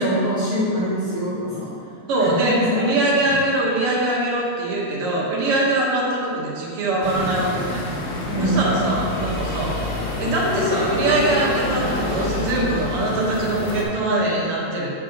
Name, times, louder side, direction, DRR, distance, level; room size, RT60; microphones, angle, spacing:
voice 1, 0.0-1.7 2.2-2.8 8.3-8.6, equal, 10° right, -14 dB, 1.5 m, -24 dB
voice 2, 2.1-7.8 8.4-9.7 10.2-15.0, right 2 dB, 85° right, -4 dB, 2.2 m, -22 dB
sound 1, 7.0-13.8, left 2 dB, 60° left, 1.5 m, -27 dB
8.1 x 6.4 x 2.9 m, 2.4 s
omnidirectional pair, 2.4 m